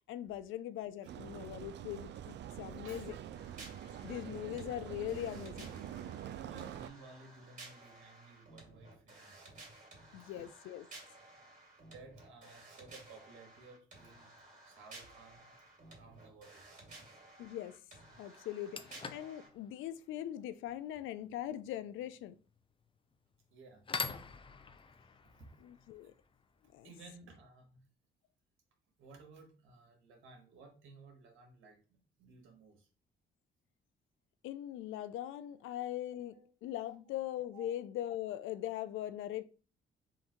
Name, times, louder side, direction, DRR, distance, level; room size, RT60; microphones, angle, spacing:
voice 1, 0.1-3.2 4.0-6.1 10.1-10.8 17.4-17.8 18.2-22.4 25.6-26.1 26.7-26.9 34.4-36.3 36.6-39.4, left 12 dB, 85° left, 0.4 m, -41 dB
sound 1, 1.1-6.9, right 10 dB, 60° right, 0.4 m, -46 dB
voice 2, 2.8-3.2 6.4-9.5 10.2-10.4 11.4-11.5 11.8-14.4 14.6-17.0 23.5-23.8 25.2-25.5 26.8-27.8 29.0-31.8 32.2-32.9 36.3-36.5 37.5-37.7, right 3 dB, 80° right, 1.7 m, -56 dB
sound 2, 3.3-19.5, right 2 dB, 40° right, 2.4 m, -55 dB
sound 3, 15.4-15.7 17.7-17.8 18.3-27.1, left 5 dB, 25° left, 0.5 m, -47 dB
3.7 x 2.7 x 4.4 m
cardioid pair, 90°, 20 cm